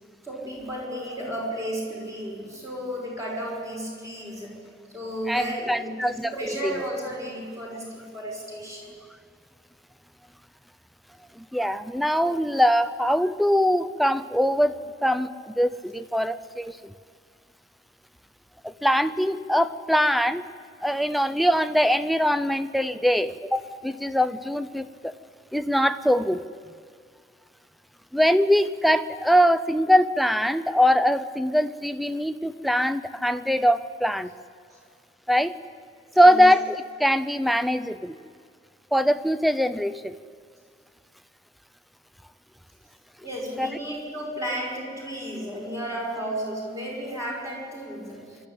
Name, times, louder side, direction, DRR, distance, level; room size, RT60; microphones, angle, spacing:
voice 1, 0.2-4.6 4.9-9.0 23.7-23.8 34.7-34.8 36.1-36.5 43.2-48.5, equal, 15° right, -3 dB, 5.5 m, -33 dB
voice 2, 5.3-6.7 11.4-14.7 15.0-16.9 18.6-20.5 20.8-25.1 25.5-26.4 28.1-34.3 35.3-35.5 36.2-38.2 38.9-40.1 43.6-43.7, equal, ahead, 13 dB, 0.5 m, -22 dB
25.0 x 12.5 x 8.8 m, 2.2 s
head